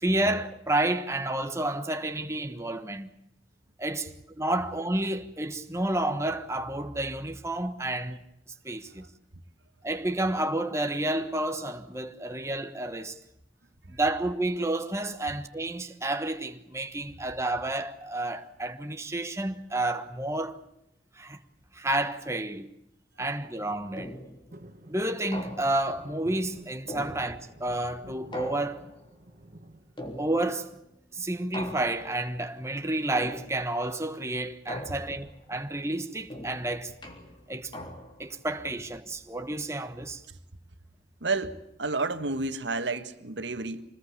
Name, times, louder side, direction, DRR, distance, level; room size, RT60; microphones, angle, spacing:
voice 1, 0.0-3.1 3.8-8.2 8.6-9.1 9.8-13.2 13.9-20.6 21.2-21.4 21.7-22.7 23.2-24.1 24.9-28.9 30.2-30.7 31.1-36.9 37.5-37.7 38.2-40.2, right 1 dB, 15° right, 1.3 m, -30 dB
sound 1, 24.0-24.5 25.3-26.0 26.9-27.6 28.3-29.1 30.0-30.7 31.5-32.3 33.1-33.8 34.7-35.4 36.3-38.3, left 1 dB, 25° left, 3.5 m, -41 dB
sound 2, 24.5-30.7 31.1-31.7 33.0-33.4 33.7-33.8 34.0-34.3 35.2-36.1 36.6-36.7, right 1 dB, 45° right, 2.1 m, -52 dB
voice 2, 41.2-43.8, right 3 dB, 85° right, 1.7 m, -31 dB
25.5 x 20.0 x 8.4 m
head